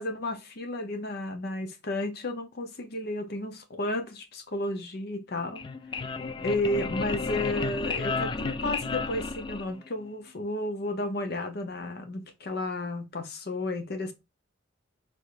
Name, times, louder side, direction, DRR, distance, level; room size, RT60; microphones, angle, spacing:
voice 1, 0.0-5.6 6.1-6.2 6.4-14.1, left 1 dB, 55° left, 0.8 m, -32 dB
sound 1, 5.4-10.1, left 4 dB, 25° left, 0.4 m, -32 dB
4.7 x 3.4 x 2.5 m
head